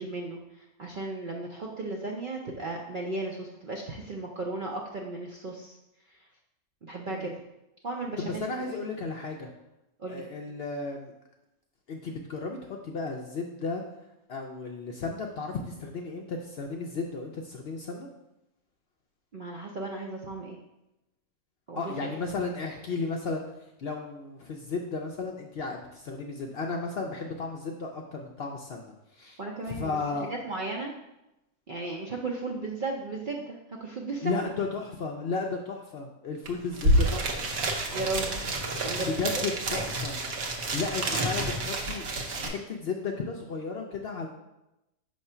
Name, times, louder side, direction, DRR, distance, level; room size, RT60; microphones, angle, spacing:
voice 1, 0.0-5.8 6.1-6.3 6.8-7.4 7.8-8.9 10.0-10.2 19.3-20.6 21.7-22.2 29.4-30.9 31.7-34.5 37.9-38.4 38.8-39.8, right 2 dB, 55° right, -1 dB, 0.5 m, -35 dB
voice 2, 8.2-9.5 10.1-11.1 11.9-13.8 14.3-18.1 21.7-23.4 23.8-29.4 29.7-30.3 34.2-37.5 39.0-40.2 40.7-42.0 42.4-44.3, left 4 dB, 60° left, 1 dB, 0.6 m, -34 dB
sound 1, 36.5-36.6 36.7-42.5, right 1 dB, 70° right, 1.2 m, -28 dB
5.8 x 3.1 x 5.4 m, 0.90 s
omnidirectional pair, 1.5 m